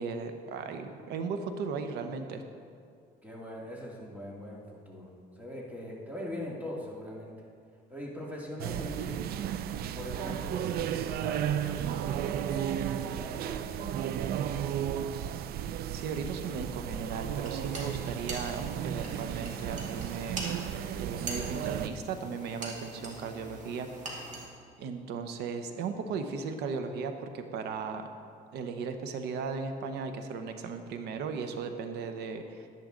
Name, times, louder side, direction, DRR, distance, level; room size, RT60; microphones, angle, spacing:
voice 1, 0.0-2.4 15.9-23.9 24.2-24.4 24.8-28.1 28.5-32.7, right 5 dB, 80° right, 7 dB, 1.0 m, -36 dB
voice 2, 3.2-7.4 7.9-9.2 10.0-14.9, equal, 10° right, -3 dB, 2.2 m, -42 dB
sound 1, 8.6-21.9, right 10 dB, 65° right, 0.4 m, -34 dB
sound 2, 17.3-24.5, right 2 dB, 45° right, 2.2 m, -43 dB
10.5 x 10.5 x 3.9 m, 2.3 s
cardioid pair, 110°, 17 cm